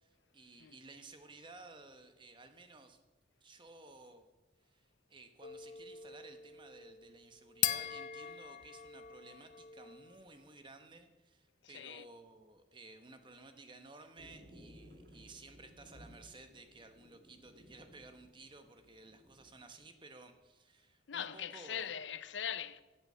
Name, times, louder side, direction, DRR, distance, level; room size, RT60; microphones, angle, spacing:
voice 1, 0.0-3.0 3.4-4.2 4.7-21.9, right 3 dB, 25° right, 1.1 m, -56 dB
sound 1, 5.4-10.3, left 11 dB, 45° left, 0.5 m, -41 dB
voice 2, 11.6-12.1 21.1-22.8, left 8 dB, 90° left, 0.6 m, -41 dB
sound 2, 14.2-19.7, equal, 55° right, 2.0 m, -59 dB
14.5 x 7.9 x 5.6 m
head